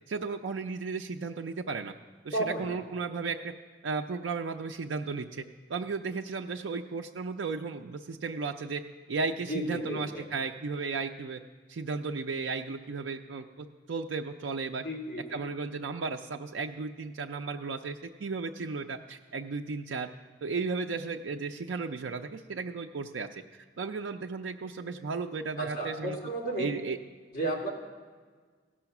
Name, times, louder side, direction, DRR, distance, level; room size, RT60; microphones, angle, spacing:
voice 1, 0.1-1.9 2.2-3.5 3.8-5.4 5.7-8.8 9.1-11.4 11.7-14.8 15.3-20.1 20.4-26.2 26.6-27.0, right 4 dB, 85° right, 3 dB, 0.4 m, -35 dB
voice 2, 2.3-2.7 9.5-10.2 14.8-15.4 25.6-26.7 27.3-27.7, right 1 dB, 50° left, -1 dB, 2.3 m, -33 dB
16.0 x 6.2 x 5.9 m, 1.5 s
head